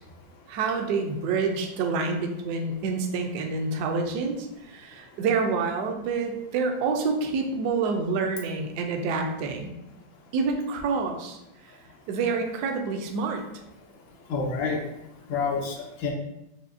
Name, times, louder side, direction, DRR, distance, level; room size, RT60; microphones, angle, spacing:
voice 1, 0.5-9.8 10.3-11.4 11.6-11.7 12.1-13.4, right 4 dB, 70° right, 4 dB, 1.0 m, -27 dB
voice 2, 14.2-14.9 15.2-16.1, left 4 dB, 90° left, 1 dB, 1.5 m, -29 dB
5.7 x 2.7 x 2.5 m, 0.85 s
omnidirectional pair, 2.0 m